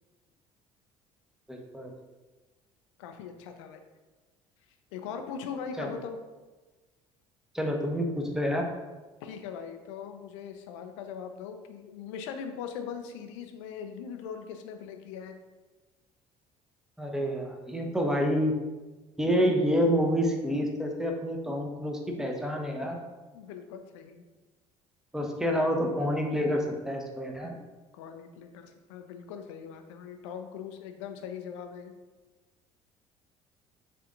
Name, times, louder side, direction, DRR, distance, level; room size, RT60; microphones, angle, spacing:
voice 1, 1.5-1.9 5.8-5.9 7.5-8.7 17.0-18.5 19.2-23.0 25.1-27.5, equal, 5° right, 1 dB, 1.1 m, -28 dB
voice 2, 3.0-3.8 4.9-6.2 9.2-15.3 23.3-24.2 27.9-31.9, left 7 dB, 65° left, 6 dB, 0.6 m, -40 dB
6.7 x 3.7 x 3.8 m, 1.2 s
figure-of-eight pair, 55°, 17 cm